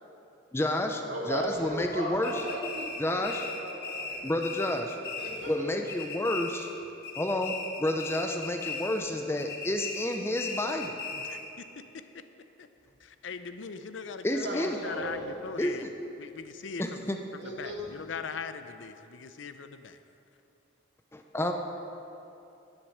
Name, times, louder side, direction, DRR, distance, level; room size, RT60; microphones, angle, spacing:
voice 1, 0.5-1.0 1.3-2.3 3.0-3.4 4.2-5.0 5.5-6.7 7.2-11.0 14.2-14.8 15.6-15.9 16.8-17.2 21.1-21.5, left 1 dB, 15° left, 4 dB, 0.5 m, -30 dB
voice 2, 1.0-4.3 4.7-4.9 5.2-5.7 14.4-15.3 17.4-17.9 21.4-21.5, equal, 60° right, -4 dB, 2.5 m, -37 dB
sound 1, 2.2-5.6 5.9-6.8 7.0-9.1 9.4-11.5, left 4 dB, 55° left, 1.4 m, -38 dB
voice 3, 11.1-12.2 12.6-12.7 13.0-15.9 16.2-17.1 17.4-20.0, left 5 dB, 75° left, 10 dB, 0.6 m, -41 dB
10.0 x 8.7 x 6.4 m, 2.8 s
head